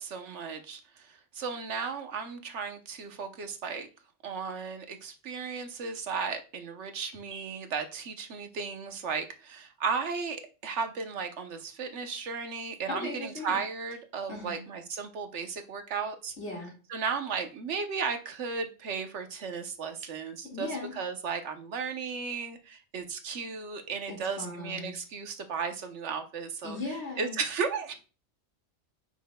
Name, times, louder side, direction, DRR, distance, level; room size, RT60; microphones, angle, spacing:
voice 1, 0.0-3.9 4.2-16.3 16.9-26.8 27.2-27.9, right 5 dB, 70° right, 7 dB, 1.2 m, -35 dB
voice 2, 12.9-13.6 14.3-14.6 16.4-16.7 20.4-21.0 24.1-25.0 26.6-27.3, left 2 dB, 65° left, -2 dB, 2.3 m, -37 dB
9.3 x 6.1 x 2.3 m, 0.35 s
omnidirectional pair, 1.3 m